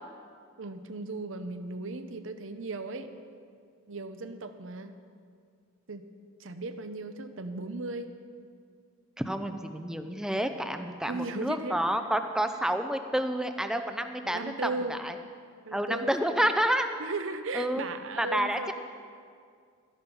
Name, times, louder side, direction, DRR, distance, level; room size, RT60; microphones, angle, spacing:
voice 1, 0.6-3.1 3.9-5.0 5.9-6.0 6.4-8.1 11.0-11.8 14.2-15.0 15.7-16.5 17.0-18.7, right 3 dB, 65° right, 9 dB, 0.7 m, -36 dB
voice 2, 9.2-15.2 15.7-16.9 17.5-17.8 18.2-18.7, right 1 dB, 5° right, 7 dB, 0.6 m, -29 dB
13.5 x 10.5 x 5.5 m, 2.2 s
head